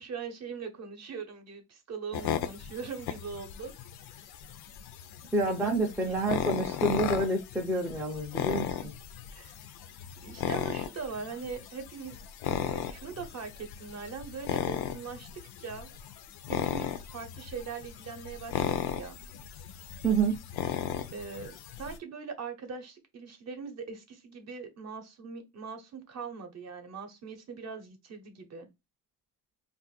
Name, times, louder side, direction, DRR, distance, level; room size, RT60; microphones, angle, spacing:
voice 1, 0.0-3.7 4.1-4.2 5.4-6.4 9.3-9.6 10.2-12.2 12.4-15.3 15.6-15.9 16.5-19.2 21.1-28.7, right 5 dB, 40° right, 0.8 m, -41 dB
sound 1, 2.1-22.0, left 9 dB, 75° left, 0.5 m, -36 dB
voice 2, 5.3-8.7 20.0-20.4, right 2 dB, 5° right, 0.4 m, -28 dB
2.5 x 2.4 x 4.1 m
cardioid pair, 150°, 38 cm